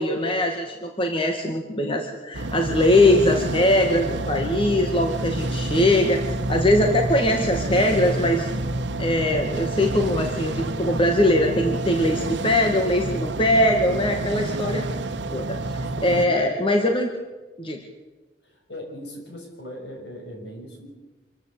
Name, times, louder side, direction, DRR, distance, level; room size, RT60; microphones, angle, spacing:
voice 1, 0.0-6.2 6.5-8.5 9.0-14.8 15.3-17.1 17.6-17.8, left 1 dB, 30° left, 3 dB, 2.0 m, -21 dB
sound 1, 2.3-16.3, right 2 dB, 90° right, 1.1 m, -28 dB
voice 2, 12.1-12.5 16.1-16.6 18.4-20.9, equal, 65° left, 2 dB, 6.1 m, -39 dB
26.5 x 14.0 x 8.4 m, 1.2 s
head